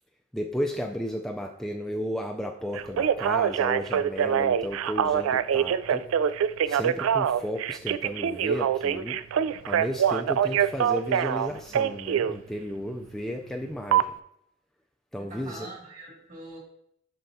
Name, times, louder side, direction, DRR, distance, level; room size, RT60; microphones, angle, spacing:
voice 1, 0.3-6.0 6.7-9.2 9.7-14.1 15.1-15.7, equal, ahead, 1 dB, 0.4 m, -33 dB
Telephone, 2.7-12.3 13.9-14.0, right 8 dB, 85° right, 0.3 m, -24 dB
voice 2, 15.2-16.6, right 2 dB, 40° right, -3 dB, 2.2 m, -43 dB
12.0 x 4.5 x 2.7 m, 0.73 s
head